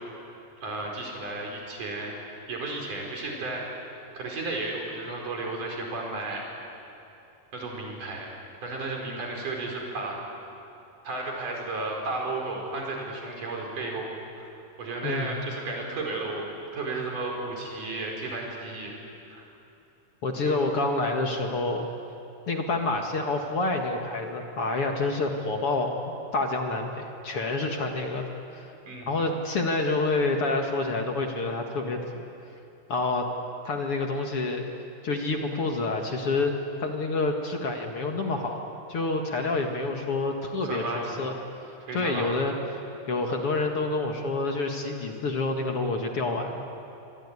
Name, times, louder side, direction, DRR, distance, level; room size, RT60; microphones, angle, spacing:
voice 1, 0.6-2.2 2.5-3.7 4.1-6.4 7.5-8.3 8.6-10.3 11.0-14.1 14.4-14.5 14.8-16.4 16.7-18.9 19.3-19.5 20.4-20.6 21.0-21.1 28.9-29.1 40.6-41.2 41.9-42.3, right 2 dB, 75° right, 0 dB, 6.5 m, -33 dB
voice 2, 20.2-21.9 22.5-28.3 28.5-28.7 29.1-32.2 32.9-33.3 33.6-34.6 35.0-36.5 36.8-41.3 41.6-42.5 43.1-46.7, left 3 dB, 50° left, 3 dB, 2.5 m, -28 dB
24.5 x 24.0 x 9.8 m, 2.7 s
omnidirectional pair, 3.7 m